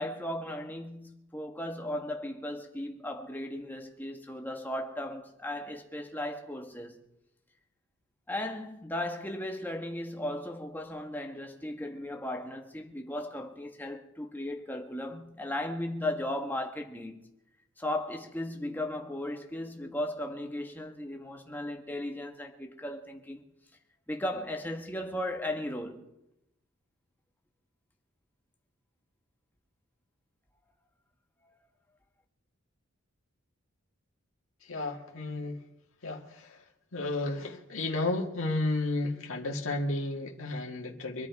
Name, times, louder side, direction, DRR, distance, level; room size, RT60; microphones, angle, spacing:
voice 1, 0.0-7.0 8.3-17.2 17.8-23.4 24.1-26.0, left 1 dB, 10° left, 1.5 m, -36 dB
voice 2, 34.6-35.6 36.0-41.3, left 2 dB, 75° left, 1.8 m, -33 dB
25.0 x 10.5 x 4.7 m
head